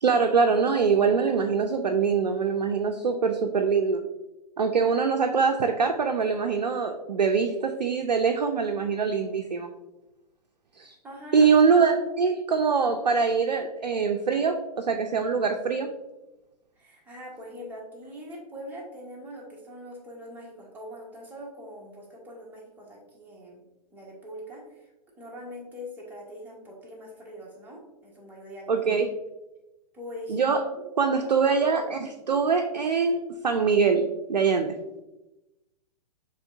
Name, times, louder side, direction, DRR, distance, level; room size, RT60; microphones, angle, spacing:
voice 1, 0.0-4.0 4.6-9.7 10.8-10.9 11.3-15.9 28.7-29.1 30.3-30.7 31.0-34.8, right 5 dB, 75° right, 4 dB, 0.5 m, -23 dB
voice 2, 11.0-11.4 16.8-23.6 23.9-24.9 25.2-28.8 29.9-30.8, equal, 10° right, -4 dB, 1.2 m, -42 dB
6.8 x 3.0 x 2.6 m, 0.99 s
figure-of-eight pair, 115°, 21 cm